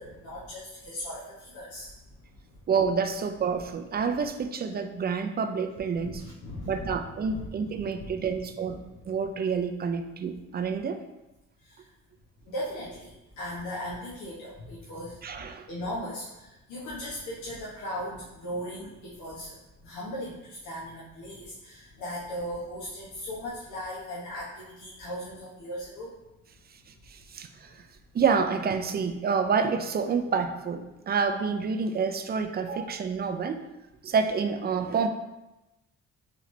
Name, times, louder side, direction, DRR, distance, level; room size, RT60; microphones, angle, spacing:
voice 1, 0.0-1.9 2.3-2.4 5.9-6.9 7.3-7.5 7.7-8.4 8.8-8.9 11.6-11.8 12.5-15.2 15.7-19.6 19.8-26.1 32.6-32.8, equal, 80° left, -8 dB, 1.0 m, -38 dB
voice 2, 2.7-6.2 6.7-8.8 9.1-11.0 15.2-15.7 27.1-27.7 28.1-33.6 34.0-35.1, right 5 dB, 35° right, 6 dB, 0.4 m, -28 dB
3.8 x 3.2 x 3.1 m, 1.0 s
cardioid pair, 90°, 30 cm